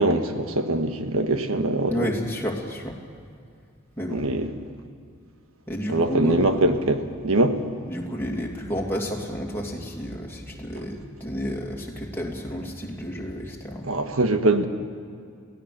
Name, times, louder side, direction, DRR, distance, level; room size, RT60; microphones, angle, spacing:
voice 1, 0.0-2.1 4.1-4.5 5.9-7.6 13.8-14.7, right 2 dB, 75° right, 7 dB, 1.5 m, -23 dB
voice 2, 1.9-3.0 4.0-4.3 5.7-6.7 7.9-13.9, equal, 10° left, -2 dB, 2.6 m, -31 dB
23.0 x 16.5 x 6.9 m, 2.3 s
head